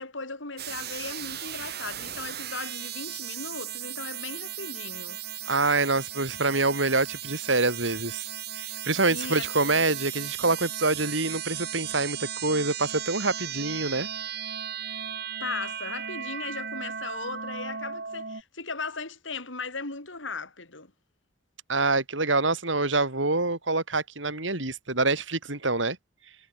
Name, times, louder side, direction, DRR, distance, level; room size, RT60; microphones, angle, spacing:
voice 1, 0.0-5.2 9.1-9.8 15.4-20.9, left 4 dB, 80° left, 4.8 m, -37 dB
sound 1, 0.6-18.4, right 9 dB, 55° right, 4.0 m, -36 dB
voice 2, 5.5-8.3 8.5-14.1 21.7-26.0, right 3 dB, 75° right, 5.4 m, -26 dB
head